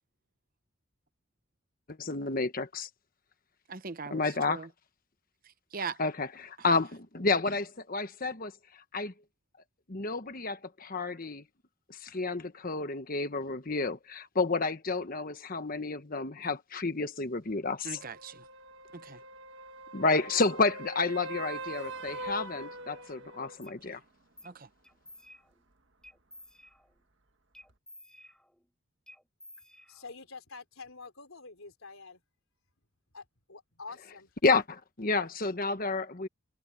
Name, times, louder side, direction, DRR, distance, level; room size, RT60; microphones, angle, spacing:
voice 1, 1.9-2.9 4.1-4.7 6.0-9.1 9.9-11.4 11.9-18.0 19.9-24.0 34.4-36.3, left 3 dB, 40° left, 1.2 m, -30 dB
voice 2, 3.7-4.7 5.4-6.0 17.8-18.5 18.9-19.2 23.9-24.0 24.4-24.7, right 5 dB, 40° right, 0.8 m, -40 dB
sound 1, 17.9-23.6 27.7-27.8, right 2 dB, 55° right, 1.8 m, -42 dB
sound 2, 23.6-23.8 24.4-24.6 24.8-25.7 26.0-27.0 27.5-28.7 29.1-30.3, left 1 dB, 5° left, 6.9 m, -54 dB
voice 3, 30.0-32.2 33.1-34.3, left 4 dB, 70° left, 3.6 m, -47 dB
head